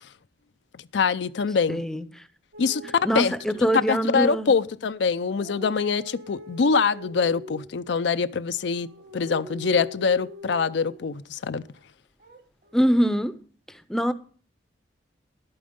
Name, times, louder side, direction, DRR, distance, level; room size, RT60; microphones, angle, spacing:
voice 1, 0.9-1.8 2.6-3.3 3.6-11.6, left 5 dB, 70° left, 0.5 m, -24 dB
voice 2, 1.7-2.0 3.0-4.5 12.7-13.3 13.9-14.1, equal, 5° left, 0.6 m, -23 dB
sound 1, 2.5-4.2 5.0-7.7 8.5-11.1 12.2-12.8, equal, 50° right, 1.4 m, -43 dB
11.5 x 8.7 x 5.2 m
head